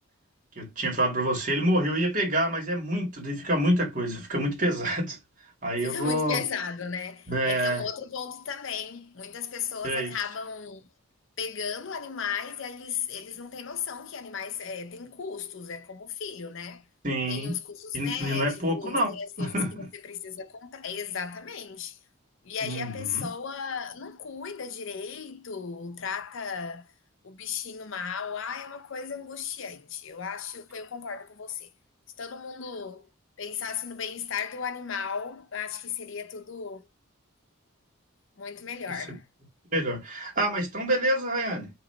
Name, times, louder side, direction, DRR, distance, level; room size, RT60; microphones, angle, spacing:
voice 1, 0.6-5.2 5.6-6.4 7.3-7.8 9.8-10.2 17.0-17.6 17.9-19.9 22.6-23.2 39.7-41.7, right 1 dB, 35° right, 1.9 m, -27 dB
voice 2, 5.8-10.9 11.4-16.8 17.3-22.0 22.4-26.9 27.2-31.7 32.2-33.1 33.4-36.9 38.4-39.2, left 6 dB, 60° left, 0.6 m, -35 dB
4.1 x 2.9 x 4.2 m
head